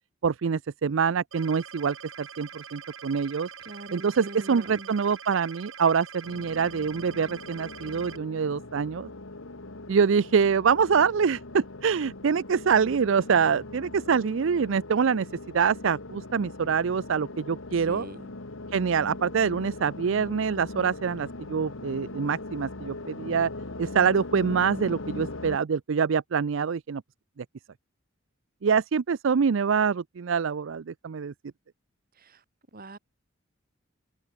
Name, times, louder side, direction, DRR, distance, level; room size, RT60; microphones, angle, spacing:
voice 1, 0.2-3.5 3.9-9.1 9.9-15.3 15.5-18.1 18.7-23.5 23.8-27.0 28.6-31.3, right 6 dB, 70° right, 0.5 m, -25 dB
sound 1, 1.3-8.2, right 7 dB, 85° right, 6.2 m, -44 dB
voice 2, 3.6-4.9 17.9-18.3 32.7-33.0, right 2 dB, 50° right, 2.4 m, -42 dB
sound 2, 6.2-25.6, left 2 dB, 80° left, 1.9 m, -40 dB
head